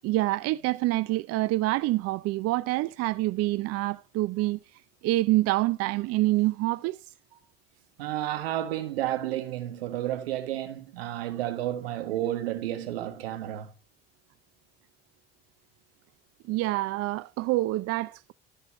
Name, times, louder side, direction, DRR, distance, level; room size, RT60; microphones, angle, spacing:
voice 1, 0.0-4.6 5.0-7.0 16.5-18.3, right 18 dB, 55° right, 0.5 m, -26 dB
voice 2, 8.0-13.7, right 13 dB, 85° right, 1.6 m, -31 dB
13.0 x 5.5 x 3.7 m
hypercardioid pair, 70°, 29 cm